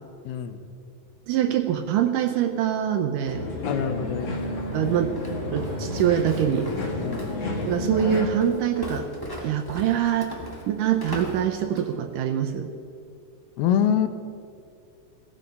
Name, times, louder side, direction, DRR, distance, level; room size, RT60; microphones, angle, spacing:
voice 1, 0.3-0.6 3.6-4.4 4.8-5.2 7.0-7.3 13.6-14.1, left 9 dB, 90° left, 10 dB, 2.8 m, -25 dB
voice 2, 1.3-3.5 4.7-5.1 5.5-6.7 7.6-9.1 9.4-10.4 10.7-12.7, right 9 dB, 75° right, 7 dB, 2.1 m, -24 dB
sound 1, 3.3-8.3, left 1 dB, 40° left, 2.2 m, -31 dB
Walk footsteps, 4.2-12.0, equal, 15° left, 0.8 m, -39 dB
18.0 x 14.0 x 5.5 m, 2.4 s
omnidirectional pair, 4.3 m